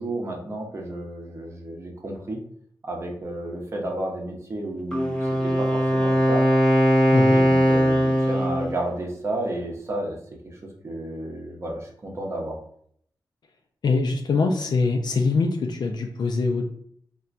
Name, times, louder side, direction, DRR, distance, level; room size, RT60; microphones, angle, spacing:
voice 1, 0.0-2.4 2.8-6.4 7.3-10.2 10.4-12.6, right 1 dB, 35° right, 0 dB, 0.7 m, -32 dB
Wind instrument woodwind instrument, 4.9-8.7, equal, 10° left, 0.6 m, -20 dB
voice 2, 13.8-16.6, left 4 dB, 65° left, 3 dB, 0.4 m, -23 dB
4.2 x 2.2 x 2.5 m, 0.64 s
wide cardioid pair, 150°, 8 cm